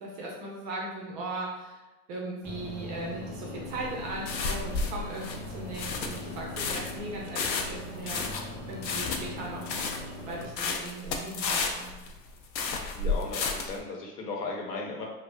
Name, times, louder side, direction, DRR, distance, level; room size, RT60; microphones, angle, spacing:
voice 1, 0.0-1.8 2.1-8.3 8.7-9.7 10.2-11.9, right 2 dB, 30° right, -2 dB, 0.4 m, -38 dB
sound 1, 2.4-10.4, left 1 dB, 5° left, 1.1 m, -41 dB
sound 2, 3.7-13.8, left 4 dB, 85° left, 0.6 m, -32 dB
voice 2, 12.9-15.1, left 3 dB, 70° left, 0 dB, 0.9 m, -36 dB
3.2 x 2.0 x 2.5 m, 1.1 s
hypercardioid pair, 110°, 49 cm